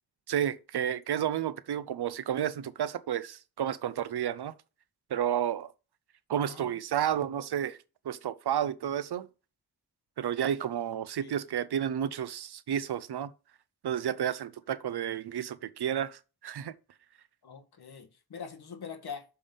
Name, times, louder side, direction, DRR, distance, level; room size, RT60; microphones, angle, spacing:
voice 1, 0.3-4.5 5.1-5.7 6.3-7.8 8.0-9.3 10.2-13.3 13.8-16.7, right 9 dB, 80° right, 0.7 m, -31 dB
voice 2, 17.4-19.2, left 6 dB, 75° left, 1.6 m, -43 dB
6.9 x 5.3 x 5.4 m
wide cardioid pair, 145°, 38 cm